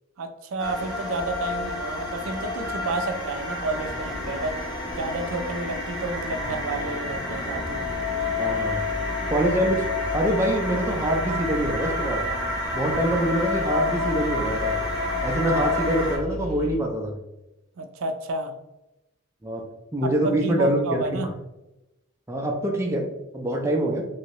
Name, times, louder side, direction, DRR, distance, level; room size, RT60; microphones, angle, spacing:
voice 1, 0.2-4.6 4.9-7.9 17.8-18.5 20.0-21.3, right 3 dB, 75° right, 6 dB, 0.4 m, -30 dB
sound 1, 0.6-16.2, left 2 dB, 20° left, 0.8 m, -29 dB
sound 2, 3.7-16.8, equal, 85° left, 1.4 m, -37 dB
voice 2, 8.4-8.9 9.3-9.8 10.1-12.2 12.7-14.8 15.2-17.1 19.4-19.6 19.9-21.2 22.3-23.1 23.3-24.1, right 1 dB, 10° right, 0 dB, 0.4 m, -25 dB
3.1 x 2.7 x 2.9 m, 0.95 s
head